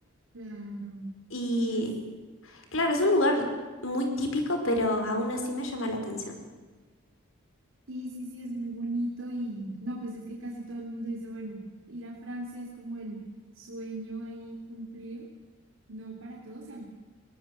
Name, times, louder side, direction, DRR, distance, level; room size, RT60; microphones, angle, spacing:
voice 1, 0.3-1.1 1.6-1.9 7.9-11.6 11.9-13.2 13.5-15.3 15.9-16.9, right 1 dB, 70° right, -2 dB, 3.5 m, -37 dB
voice 2, 1.3-1.9 2.5-3.4 3.8-6.3, left 1 dB, 75° left, 5 dB, 4.7 m, -27 dB
22.0 x 18.5 x 7.8 m, 1.4 s
head